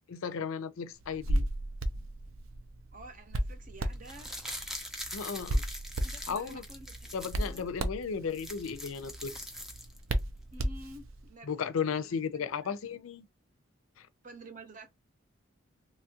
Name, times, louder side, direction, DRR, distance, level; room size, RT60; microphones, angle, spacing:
voice 1, 0.1-1.4 5.1-5.6 6.3-6.6 7.1-9.5 11.5-13.2 14.0-14.1, left 6 dB, 85° left, 0.5 m, -35 dB
Hands, 1.0-11.3, right 1 dB, 85° right, 0.5 m, -35 dB
voice 2, 2.9-4.3 6.0-7.7 10.5-11.7 12.1-12.7 14.2-14.9, right 2 dB, 40° right, 0.7 m, -50 dB
sound 1, 3.9-7.6 8.0-8.1 8.3-10.2 10.5-10.6, equal, ahead, 0.4 m, -43 dB
3.0 x 2.3 x 2.8 m
head